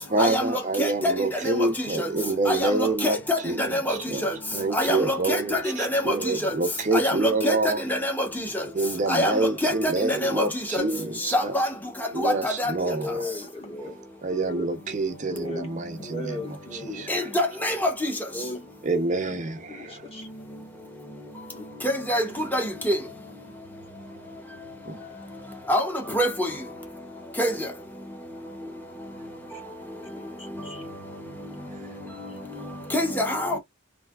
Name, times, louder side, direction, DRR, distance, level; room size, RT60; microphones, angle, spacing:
voice 1, 0.1-4.3 4.5-7.9 8.7-11.5 12.1-13.3 14.2-17.1 18.8-20.0 24.8-25.1, right 2 dB, 35° right, 0.5 m, -27 dB
voice 2, 0.8-1.1 2.0-2.1 2.5-4.0 4.7-6.1 6.4-6.5 6.9-7.1 7.4-8.3 9.1-9.3 9.6-9.7 10.0-10.4 11.3-11.7 12.2-12.7 17.1-18.1 21.8-22.2 22.5-23.0 25.7-25.8 26.1-26.5 27.4-27.5 32.9-33.6, left 1 dB, 10° left, 0.8 m, -25 dB
voice 3, 10.8-11.2 12.1-12.2 12.9-14.0 14.4-14.7 15.2-15.7 16.0-17.2 18.3-18.7 19.2-19.3 19.7-20.3 21.5-21.7 28.6-28.8 30.1-30.8, left 1 dB, 30° left, 1.2 m, -37 dB
3.2 x 2.7 x 2.2 m
head